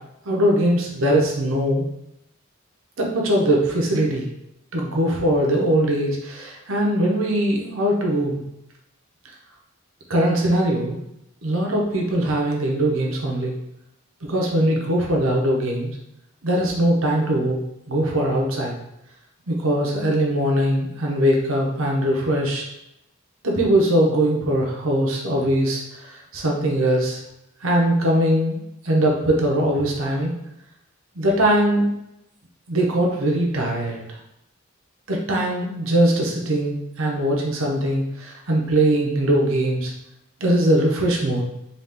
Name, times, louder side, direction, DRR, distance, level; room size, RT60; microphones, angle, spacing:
voice 1, 0.2-1.9 3.0-4.3 4.7-8.4 10.1-11.0 11.4-13.5 14.3-15.9 16.4-17.6 17.9-18.7 19.5-22.6 23.4-27.2 27.6-28.6 28.8-30.3 31.1-31.9 32.7-34.0 35.1-39.9 40.4-41.4, right 1 dB, 80° right, -1 dB, 0.9 m, -21 dB
4.0 x 2.4 x 3.6 m, 0.84 s
head